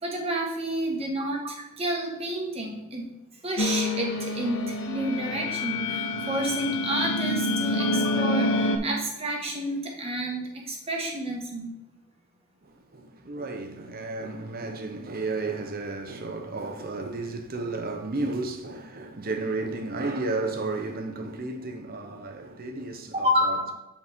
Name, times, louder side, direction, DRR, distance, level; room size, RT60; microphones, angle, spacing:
voice 1, 0.0-3.1 3.4-11.7 23.1-23.7, right 1 dB, 30° right, 1.5 m, -30 dB
sound 1, 3.6-8.8, left 2 dB, 65° left, 0.7 m, -27 dB
voice 2, 12.6-23.7, right 3 dB, 45° right, 0.9 m, -33 dB
8.2 x 4.2 x 3.6 m
head